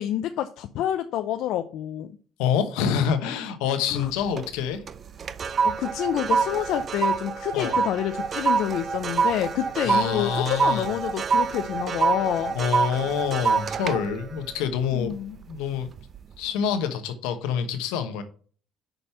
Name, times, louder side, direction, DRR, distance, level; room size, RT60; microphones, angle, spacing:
voice 1, 0.0-2.1 3.9-4.1 5.6-12.6 14.9-15.4, left 11 dB, 75° left, 8 dB, 0.5 m, -28 dB
voice 2, 2.4-4.8 7.5-7.8 9.8-10.9 12.5-15.9 16.4-18.2, left 7 dB, 90° left, 8 dB, 1.0 m, -27 dB
sound 1, 4.0-4.5 4.9-15.4 15.9-16.2, right 5 dB, 45° right, 0.4 m, -26 dB
5.9 x 5.2 x 4.3 m, 0.42 s
cardioid pair, 95°, 0 cm